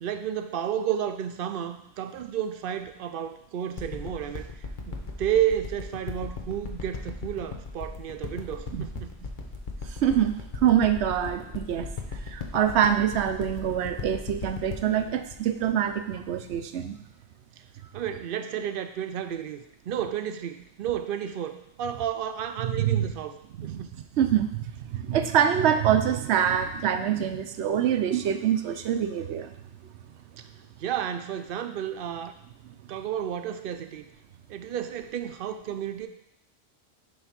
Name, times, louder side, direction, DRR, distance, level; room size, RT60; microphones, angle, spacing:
voice 1, 0.0-4.5 4.9-9.1 17.9-23.3 23.6-24.0 30.8-32.3 32.9-34.0 34.5-36.1, right 9 dB, 60° right, 8 dB, 0.7 m, -31 dB
sound 1, 3.8-16.5 17.1-17.2, left 4 dB, 50° left, 1.0 m, -37 dB
voice 2, 9.9-17.0 22.6-23.1 23.6-29.5, right 9 dB, 90° right, 9 dB, 0.9 m, -25 dB
7.3 x 3.2 x 5.7 m, 0.77 s
omnidirectional pair, 1.1 m